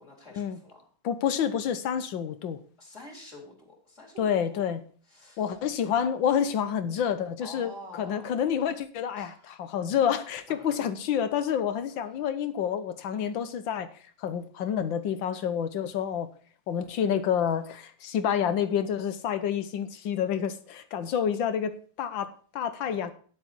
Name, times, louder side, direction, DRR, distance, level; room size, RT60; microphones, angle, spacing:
voice 1, 0.0-0.9 2.8-4.8 5.1-5.6 7.4-8.3 9.1-9.7 10.5-10.8 22.8-23.1, left 1 dB, 15° left, 3.7 m, -48 dB
voice 2, 1.0-2.6 4.2-4.8 5.4-13.9 14.2-16.3 16.7-23.1, left 8 dB, 80° left, 1.7 m, -28 dB
10.0 x 8.6 x 4.3 m
omnidirectional pair, 2.1 m